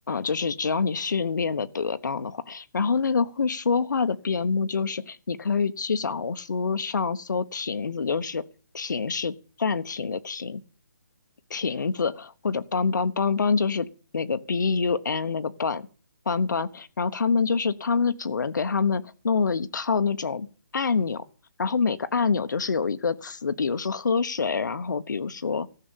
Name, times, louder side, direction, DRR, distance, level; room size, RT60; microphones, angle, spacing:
voice 1, 0.1-8.4 8.7-10.6 11.5-13.9 14.1-15.9 16.3-20.5 20.7-21.2 21.6-25.7, left 5 dB, 70° left, 1.0 m, -26 dB
14.0 x 6.7 x 9.0 m
hypercardioid pair, 175°, 10 cm